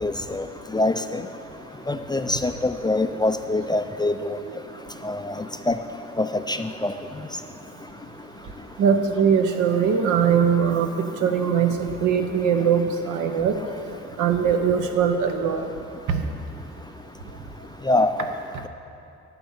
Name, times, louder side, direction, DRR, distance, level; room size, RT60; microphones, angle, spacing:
voice 1, 0.0-0.4 0.7-1.2 1.9-4.4 5.0-5.3 5.7-5.8 6.2-6.9 17.9-18.3, left 2 dB, 15° left, 8 dB, 0.3 m, -24 dB
voice 2, 8.8-10.9 11.2-13.5 14.2-15.7 16.1-16.2, right 7 dB, 80° right, 6 dB, 0.9 m, -21 dB
11.0 x 4.4 x 7.2 m, 2.8 s
cardioid pair, 90°, 30 cm